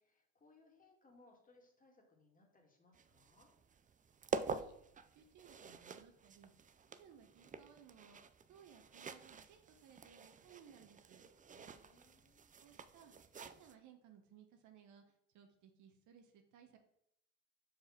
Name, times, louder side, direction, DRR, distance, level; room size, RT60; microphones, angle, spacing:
voice 1, 0.0-3.5 11.4-12.5, left 2 dB, 25° left, 0 dB, 2.3 m, -67 dB
sound 1, 2.9-13.7, right 5 dB, 25° right, 0.5 m, -48 dB
voice 2, 5.1-6.5 6.9-8.2 8.5-11.2 12.6-13.1 13.4-15.0 15.3-16.8, right 8 dB, 65° right, 6 dB, 1.1 m, -62 dB
5.0 x 4.8 x 5.7 m, 0.74 s
hypercardioid pair, 65°, 33 cm